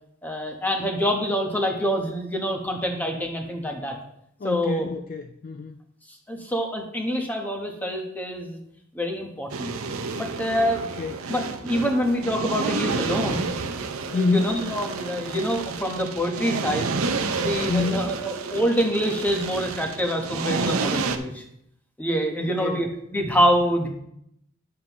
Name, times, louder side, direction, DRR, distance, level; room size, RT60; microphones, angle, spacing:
voice 1, 0.2-4.0 4.4-4.9 6.1-8.6 8.9-9.7 10.1-10.8 11.3-13.5 14.1-17.0 17.4-21.4 22.0-23.9, equal, 10° left, 2 dB, 1.0 m, -26 dB
voice 2, 4.4-5.8 11.0-11.3 14.1-14.5 17.7-18.1 22.4-22.8, left 4 dB, 40° left, 7 dB, 0.3 m, -27 dB
sound 1, 9.5-21.2, right 4 dB, 90° right, 0.7 m, -30 dB
9.5 x 7.5 x 3.0 m, 0.75 s
head